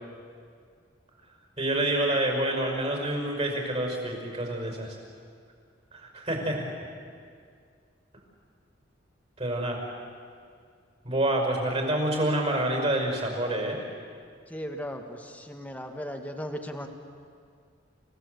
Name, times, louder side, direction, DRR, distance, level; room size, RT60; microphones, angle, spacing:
voice 1, 1.6-5.0 5.9-6.6 9.4-9.8 11.0-13.8, right 1 dB, 35° right, 2 dB, 5.6 m, -27 dB
voice 2, 14.5-16.9, equal, 10° left, 4 dB, 1.6 m, -37 dB
28.5 x 16.5 x 8.2 m, 2.2 s
head